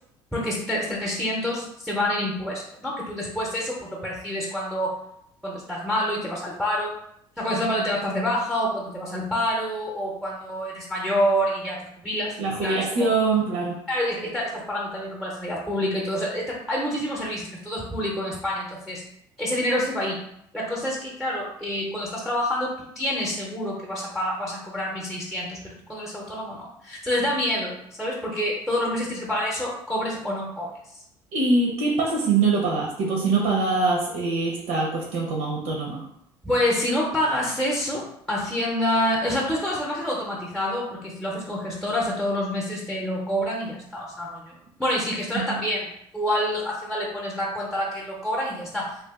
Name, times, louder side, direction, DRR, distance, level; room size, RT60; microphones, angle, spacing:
voice 1, 0.3-5.0 5.4-6.9 7.4-13.1 13.9-19.0 19.4-20.2 20.5-30.7 36.4-45.9 46.1-49.0, equal, ahead, -3 dB, 0.8 m, -27 dB
voice 2, 12.4-13.8 31.3-36.1 45.3-45.6, right 3 dB, 80° right, -2 dB, 0.8 m, -23 dB
2.7 x 2.4 x 3.5 m, 0.75 s
cardioid pair, 110°, 11 cm